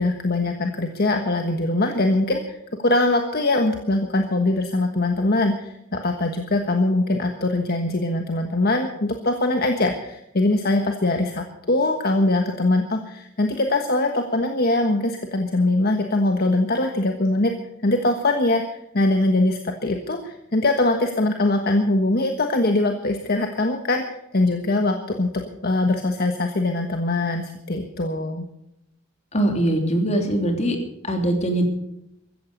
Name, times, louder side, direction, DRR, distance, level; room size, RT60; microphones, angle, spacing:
voice 1, 0.0-17.5 17.8-18.6 18.9-28.4, left 2 dB, 55° left, 5 dB, 1.4 m, -22 dB
voice 2, 29.3-30.8 31.0-31.6, right 1 dB, 35° left, 4 dB, 3.2 m, -21 dB
15.5 x 14.5 x 5.3 m, 0.82 s
head